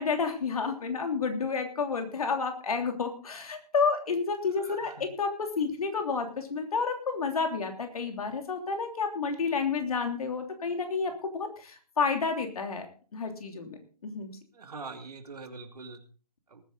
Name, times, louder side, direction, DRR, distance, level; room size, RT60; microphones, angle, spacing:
voice 1, 0.0-12.9 13.1-14.3, left 5 dB, 60° left, 5 dB, 3.2 m, -30 dB
voice 2, 4.6-5.1 14.5-16.0 16.5-16.6, right 4 dB, 65° right, 6 dB, 2.7 m, -43 dB
19.5 x 9.5 x 3.9 m, 0.38 s
figure-of-eight pair, 135°, 21 cm